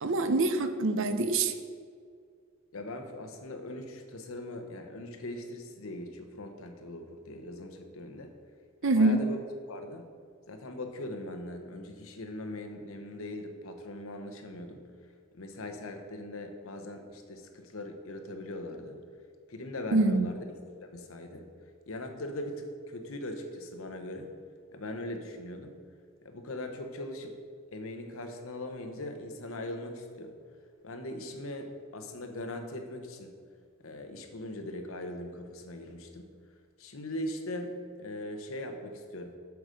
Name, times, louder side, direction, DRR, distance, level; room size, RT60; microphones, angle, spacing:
voice 1, 0.0-1.5 8.8-9.2 19.9-20.3, right 2 dB, 60° right, 9 dB, 0.6 m, -25 dB
voice 2, 2.7-8.3 8.9-9.4 9.7-10.1 10.5-14.8 15.3-19.0 19.5-20.4 20.8-21.5 21.9-24.3 24.7-25.7 26.2-27.4 27.7-30.3 30.8-33.3 33.8-36.3 36.8-37.7 38.0-39.4, left 1 dB, 75° left, 5 dB, 1.0 m, -40 dB
8.0 x 6.7 x 5.2 m, 2.1 s
head